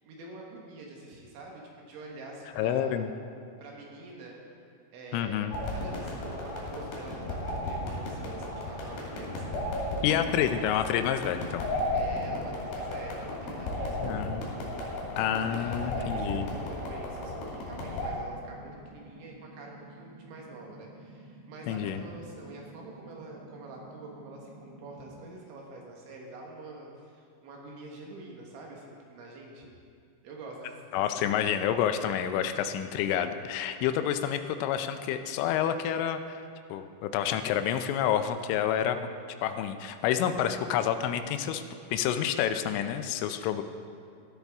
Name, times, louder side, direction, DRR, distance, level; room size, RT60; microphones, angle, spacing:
voice 1, 0.0-3.0 3.6-4.4 4.9-9.7 11.9-14.8 15.4-29.7 30.2-31.4, right 2 dB, 75° right, -1 dB, 3.5 m, -46 dB
voice 2, 2.6-3.1 5.1-5.6 10.0-11.7 14.0-14.4 15.2-16.5 21.7-22.0 30.9-36.4 36.7-39.1 39.4-41.6 41.9-43.6, left 9 dB, 85° left, 9 dB, 3.0 m, -28 dB
sound 1, 5.5-18.1, left 1 dB, 60° left, 4.0 m, -34 dB
sound 2, 8.1-25.2, right 2 dB, 30° left, 3.0 m, -51 dB
14.5 x 12.0 x 3.5 m, 2.4 s
omnidirectional pair, 5.7 m